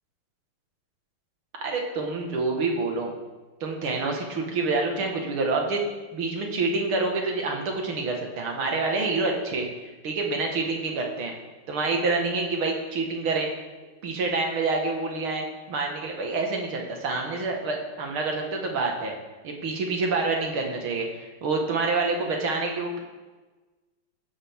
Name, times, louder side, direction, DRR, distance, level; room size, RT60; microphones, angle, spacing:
voice 1, 1.6-3.1 3.6-5.8 6.1-11.4 11.7-13.5 14.0-19.2 19.4-23.0, right 3 dB, 85° right, 1 dB, 2.7 m, -27 dB
15.5 x 10.5 x 3.7 m, 1.3 s
omnidirectional pair, 2.3 m